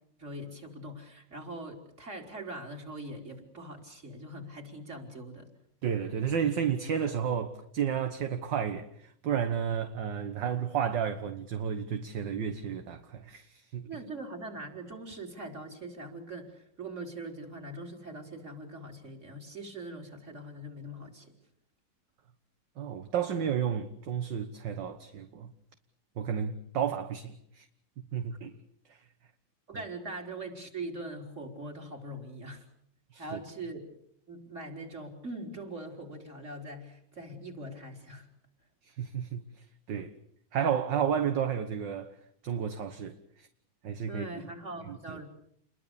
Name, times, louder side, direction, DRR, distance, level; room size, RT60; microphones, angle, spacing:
voice 1, 0.2-5.5 13.9-21.3 29.7-32.6 33.2-33.9 34.3-38.3 44.1-45.3, right 1 dB, 30° right, 4.6 m, -42 dB
voice 2, 5.8-13.9 22.8-25.5 26.2-27.7 28.1-28.5 28.9-29.0 33.1-33.4 38.8-40.1 40.5-42.1 42.4-43.5 43.8-44.4 44.9-45.2, right 8 dB, 60° right, 1.9 m, -32 dB
29.5 x 22.0 x 7.0 m
omnidirectional pair, 2.4 m